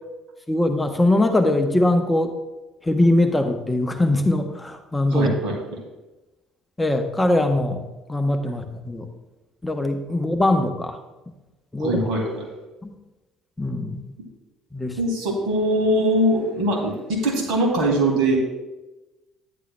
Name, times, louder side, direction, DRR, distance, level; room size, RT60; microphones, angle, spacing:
voice 1, 0.5-2.3 2.8-5.3 6.8-7.8 8.1-9.1 9.6-11.0 11.7-12.0 12.8-12.9 13.6-14.1 14.7-15.0, left 1 dB, 10° left, 5 dB, 0.9 m, -21 dB
voice 2, 5.1-5.6 11.8-12.5 15.0-18.4, right 1 dB, 60° right, 1 dB, 2.3 m, -22 dB
10.5 x 10.0 x 2.3 m, 1.1 s
figure-of-eight pair, 55°, 0 cm